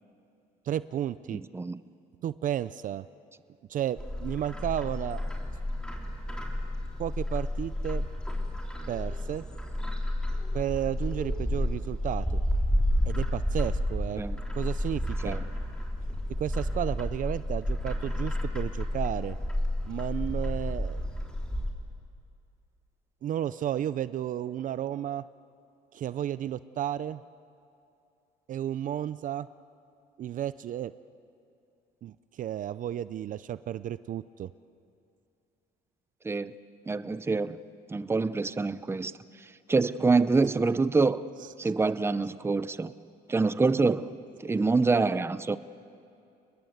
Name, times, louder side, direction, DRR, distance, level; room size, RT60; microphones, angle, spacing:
voice 1, 0.7-1.4 2.2-3.0 3.7-5.2 7.0-8.1 8.9-9.4 10.5-12.2 13.1-14.2 14.5-15.4 16.4-19.4 19.9-21.0 23.2-25.2 25.9-27.2 28.5-29.5 30.2-30.9 32.0-34.5 41.6-41.7, right 11 dB, 50° right, 15 dB, 0.5 m, -32 dB
voice 2, 1.3-1.8 14.2-14.4 15.2-15.4 36.2-36.5 36.9-37.6 37.9-39.1 39.7-41.2 41.6-42.9 43.3-44.1 44.4-45.6, right 3 dB, 15° right, 14 dB, 0.7 m, -26 dB
Bird, 4.0-21.7, left 1 dB, 5° left, 3.7 m, -31 dB
29.5 x 20.5 x 8.1 m, 2.6 s
cardioid pair, 110°, 17 cm